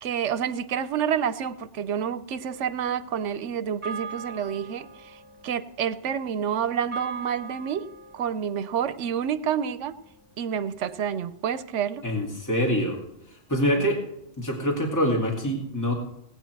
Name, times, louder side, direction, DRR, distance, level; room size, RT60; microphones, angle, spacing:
voice 1, 0.0-10.0 10.4-12.1 13.8-13.9, right 8 dB, 80° right, 14 dB, 1.0 m, -29 dB
sound 1, 3.0-11.4, right 4 dB, 25° right, 1.4 m, -42 dB
voice 2, 12.0-13.0 13.3-14.0 14.4-15.9, equal, 15° left, -1 dB, 2.5 m, -25 dB
18.0 x 8.8 x 4.6 m, 0.82 s
omnidirectional pair, 1.2 m